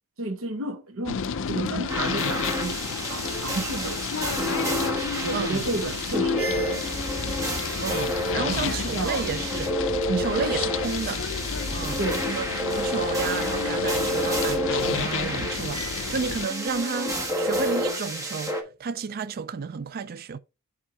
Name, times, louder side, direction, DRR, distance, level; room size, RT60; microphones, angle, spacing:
voice 1, 0.2-4.1 4.4-4.6 5.0-7.0 8.5-9.3 10.1-10.4 12.0-12.3, right 2 dB, 70° right, 1.1 m, -32 dB
sound 1, 1.0-16.5, left 7 dB, 60° left, 0.5 m, -32 dB
sound 2, 1.9-18.6, equal, 15° right, 1.4 m, -29 dB
voice 2, 5.3-6.0 7.8-9.7 10.2-11.2 11.7-12.0 12.3-20.4, right 5 dB, 45° right, 0.4 m, -32 dB
sound 3, 6.8-12.3, left 1 dB, 35° left, 2.7 m, -39 dB
7.5 x 3.7 x 4.7 m
head